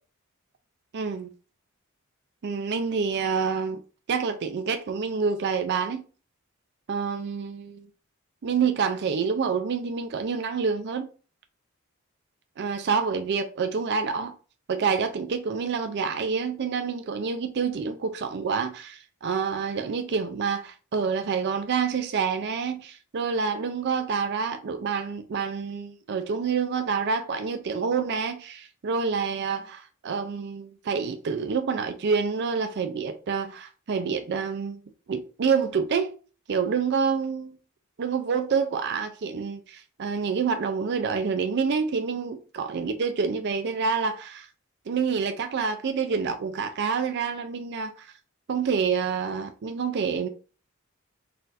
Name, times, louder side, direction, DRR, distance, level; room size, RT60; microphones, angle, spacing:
voice 1, 0.9-1.3 2.4-3.8 4.1-6.0 6.9-7.9 8.4-11.1 12.6-14.3 14.7-34.8 35.1-36.1 36.5-37.6 38.0-44.5 44.9-48.1 48.5-50.3, right 5 dB, 50° right, 0.4 m, -27 dB
4.1 x 2.5 x 4.0 m
head